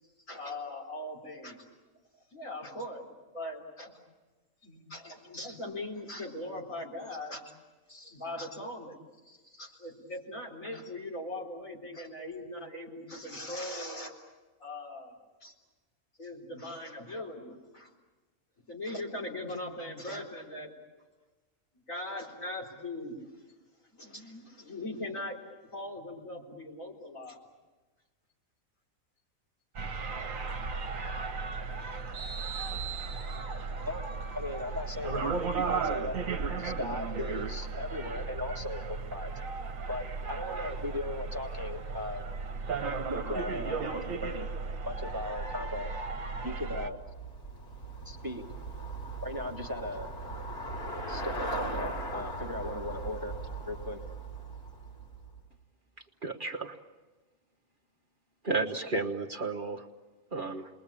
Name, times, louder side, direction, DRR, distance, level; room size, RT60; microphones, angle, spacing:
voice 1, 0.3-1.6 2.3-3.0 3.3-4.0 4.6-7.4 7.9-14.1 14.6-15.2 15.4-15.5 16.2-17.9 18.7-20.7 21.9-23.2 23.9-25.4 25.7-27.4, left 1 dB, 65° left, -2 dB, 4.6 m, -40 dB
sound 1, 29.7-46.9, right 4 dB, 65° right, 1.5 m, -35 dB
voice 2, 34.3-35.3 35.6-36.2 36.6-39.3 39.9-42.2 43.1-44.5 44.8-45.9 46.4-47.0 48.0-48.4 49.2-50.1 51.1-53.3 53.7-54.0, left 2 dB, 15° right, 3 dB, 1.5 m, -37 dB
Traffic noise roadway noise / Bicycle, 46.4-55.5, right 2 dB, 35° left, 3.4 m, -39 dB
voice 3, 56.2-56.8 58.4-59.9 60.3-60.7, right 3 dB, 40° right, 1 dB, 1.3 m, -32 dB
29.5 x 21.0 x 8.6 m, 1.3 s
omnidirectional pair, 1.5 m